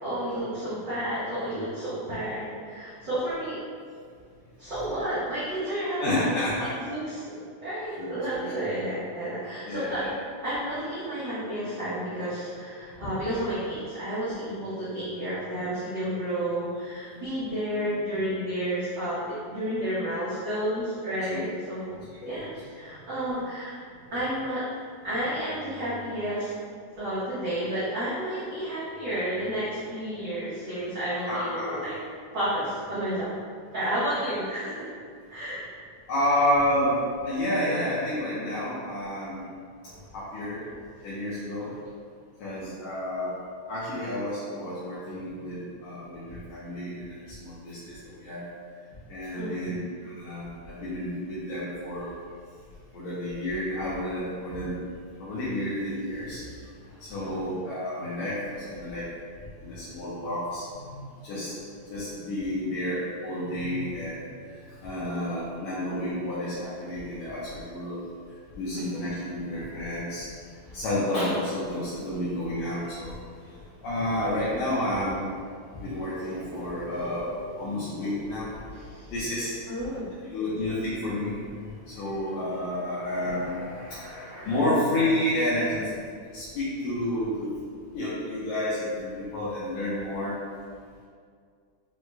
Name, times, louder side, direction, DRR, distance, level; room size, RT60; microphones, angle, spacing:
voice 1, 0.0-3.6 4.6-6.5 6.9-7.3 7.6-10.0 10.4-22.0 22.2-23.7 24.1-24.6 25.0-26.5 26.9-31.9 32.3-33.3 33.7-34.8 35.3-35.6 39.8-40.0 41.6-41.7 49.4-49.8 56.8-57.6 68.7-68.9 70.6-70.8 73.4-73.7 78.7-80.1 80.5-80.6, right 1 dB, 75° right, -12 dB, 1.0 m, -31 dB
voice 2, 6.0-6.8 8.0-8.5 9.6-10.1 13.0-13.1 21.3-21.4 21.9-22.1 22.3-22.4 31.3-31.8 36.1-39.5 40.1-40.6 41.0-41.7 42.4-43.4 43.7-48.5 49.1-52.1 52.9-54.7 55.2-56.5 57.0-59.1 59.6-61.6 61.9-64.2 64.5-68.0 68.5-70.3 70.7-73.1 73.8-75.2 75.7-79.7 80.3-85.9 86.3-87.5 87.9-90.4, left 1 dB, 75° left, -10 dB, 2.0 m, -30 dB
6.3 x 3.0 x 2.2 m, 2.1 s
omnidirectional pair, 3.4 m